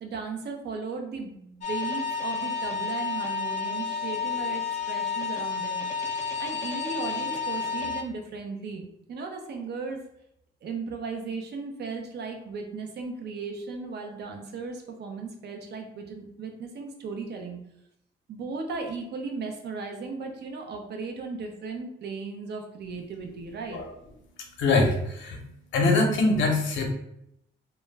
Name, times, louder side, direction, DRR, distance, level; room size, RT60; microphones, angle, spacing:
voice 1, 0.0-6.1 6.4-8.8 9.1-10.0 10.6-17.6 18.3-23.8, right 4 dB, 55° right, 3 dB, 0.6 m, -36 dB
sound 1, 1.6-8.0, left 5 dB, 40° left, 0.4 m, -31 dB
voice 2, 24.6-25.4 25.7-26.9, left 3 dB, 70° left, 1 dB, 0.7 m, -23 dB
2.2 x 2.0 x 3.2 m, 0.78 s
cardioid pair, 90°, 20 cm